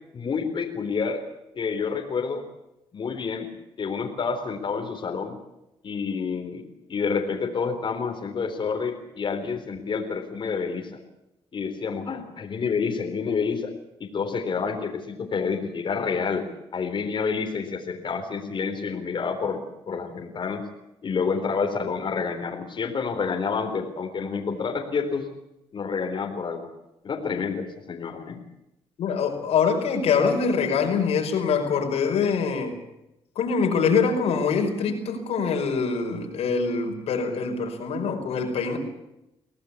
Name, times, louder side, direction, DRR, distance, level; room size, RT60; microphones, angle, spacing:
voice 1, 0.1-1.2 1.6-2.4 2.9-3.5 3.8-5.4 5.8-6.6 6.9-10.9 11.5-13.7 14.0-16.4 16.7-20.7 21.0-25.3 25.7-26.7 27.0-28.4, left 5 dB, 50° left, 2 dB, 3.8 m, -28 dB
voice 2, 29.0-32.7 33.4-38.8, left 5 dB, 85° left, 3 dB, 5.2 m, -24 dB
24.5 x 17.5 x 8.4 m, 0.90 s
cardioid pair, 90°, 10 cm